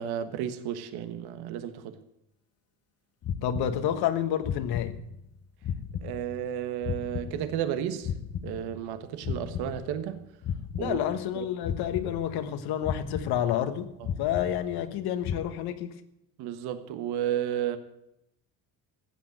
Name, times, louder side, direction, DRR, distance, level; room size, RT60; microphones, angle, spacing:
voice 1, 0.0-1.9 6.0-8.1 8.4-10.2 10.8-11.0 11.4-11.5 16.4-17.8, right 10 dB, 80° right, 1.5 m, -32 dB
sound 1, 3.2-4.2 4.4-5.4 5.6-7.8 8.0-10.2 10.4-11.4 11.6-12.6 12.8-13.8 14.0-15.0 15.2-15.5, left 8 dB, 40° left, 0.9 m, -35 dB
voice 2, 3.4-5.0 10.8-13.9 14.2-16.0, left 10 dB, 75° left, 1.5 m, -29 dB
15.0 x 8.5 x 8.0 m
cardioid pair, 115°, 38 cm